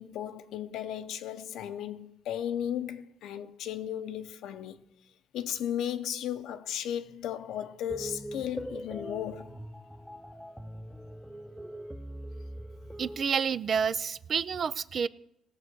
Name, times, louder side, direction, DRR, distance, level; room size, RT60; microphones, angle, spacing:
voice 1, 0.0-4.8 5.3-9.5, left 10 dB, 85° left, 0.8 m, -35 dB
sound 1, 7.9-13.2, right 1 dB, ahead, 0.8 m, -42 dB
voice 2, 13.0-15.1, right 6 dB, 50° right, 0.5 m, -29 dB
18.5 x 6.8 x 6.2 m
cardioid pair, 90°, 0 cm